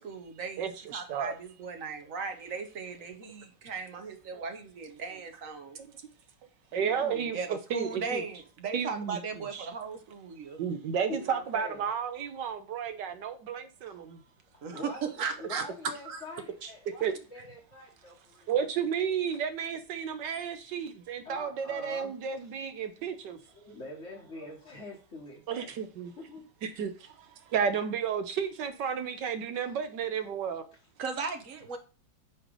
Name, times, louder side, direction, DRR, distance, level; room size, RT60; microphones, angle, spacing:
voice 1, 0.0-5.8 7.3-10.6 14.6-16.2 31.0-31.8, right 5 dB, 50° right, 1.1 m, -37 dB
voice 2, 0.6-1.4 4.3-4.4 6.7-8.2 8.7-9.7 10.6-14.2 16.6-16.7 17.0-17.1 18.5-23.4 25.5-26.1 26.6-26.9 27.5-30.6, right 7 dB, 70° right, 1.3 m, -32 dB
voice 3, 6.7-7.3 11.1-11.9 13.9-14.0 14.5-18.5 21.2-22.1 23.0-23.1 23.5-25.7 26.2-26.5 29.7-29.8, left 2 dB, 40° left, 1.4 m, -45 dB
8.7 x 3.3 x 5.2 m
omnidirectional pair, 2.2 m